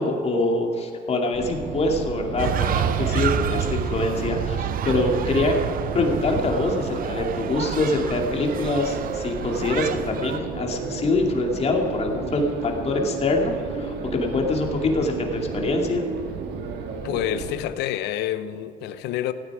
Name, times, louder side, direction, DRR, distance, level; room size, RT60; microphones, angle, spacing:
voice 1, 0.0-5.6 5.9-16.0, left 2 dB, 40° left, 2.5 m, -24 dB
sound 1, 1.3-17.5, right 5 dB, 75° right, 2.1 m, -33 dB
sound 2, 2.4-10.4, right 8 dB, 55° right, 0.9 m, -29 dB
voice 2, 17.0-19.3, left 12 dB, 85° left, 0.9 m, -28 dB
16.5 x 16.0 x 4.9 m
cardioid pair, 110°, 17 cm